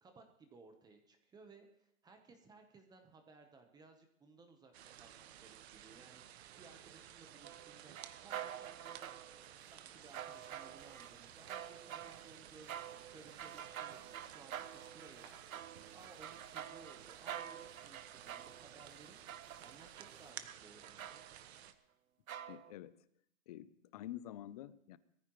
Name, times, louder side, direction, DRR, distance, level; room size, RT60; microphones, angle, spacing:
voice 1, 0.0-6.2 6.6-7.9 8.2-9.2 9.7-19.2 19.6-21.3, right 4 dB, 10° right, 5 dB, 1.0 m, -60 dB
sound 1, 4.7-21.7, right 11 dB, 50° right, 1.2 m, -55 dB
sound 2, 7.4-9.5 10.1-11.1 11.5-20.1 20.5-21.4 22.3-22.7, right 10 dB, 90° right, 1.0 m, -48 dB
sound 3, 10.0-20.3, right 6 dB, 70° right, 4.1 m, -65 dB
voice 2, 22.5-23.1 23.5-25.0, left 13 dB, 30° left, 17 dB, 0.5 m, -48 dB
22.0 x 14.5 x 3.1 m, 0.73 s
hypercardioid pair, 150°, 40 cm